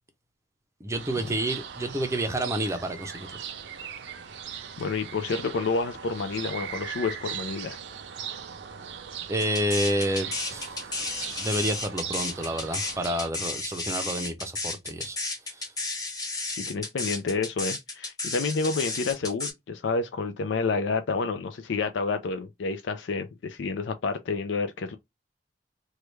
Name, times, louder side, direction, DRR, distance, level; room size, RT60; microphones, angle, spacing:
voice 1, 0.8-3.4 9.3-10.7 11.4-15.2 15.5-15.6, right 1 dB, 15° right, 0.5 m, -29 dB
sound 1, 0.9-13.3, right 7 dB, 70° right, 0.5 m, -39 dB
voice 2, 4.8-7.8 16.6-25.0, left 4 dB, 80° left, 0.4 m, -29 dB
sound 2, 9.4-19.5, left 3 dB, 20° left, 1.3 m, -32 dB
3.1 x 2.3 x 3.1 m
head